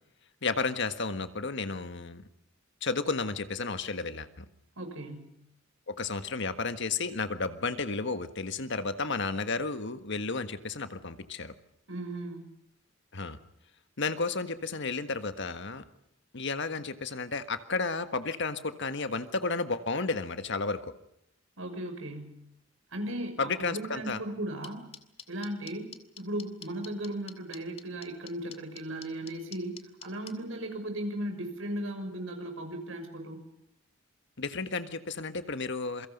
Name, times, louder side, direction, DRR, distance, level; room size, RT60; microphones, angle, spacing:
voice 1, 0.4-2.3 2.8-4.4 5.9-11.5 13.1-13.4 14.0-15.8 16.3-20.9 23.4-24.2 34.4-36.1, left 4 dB, 60° left, 10 dB, 1.6 m, -32 dB
voice 2, 4.8-5.3 11.9-12.5 21.6-22.3 22.9-24.8 25.3-25.9 26.2-29.8 30.0-33.5, right 1 dB, 80° right, 5 dB, 6.3 m, -36 dB
sound 1, 24.6-30.3, left 7 dB, 30° left, 2.1 m, -45 dB
27.5 x 23.5 x 5.4 m, 0.79 s
head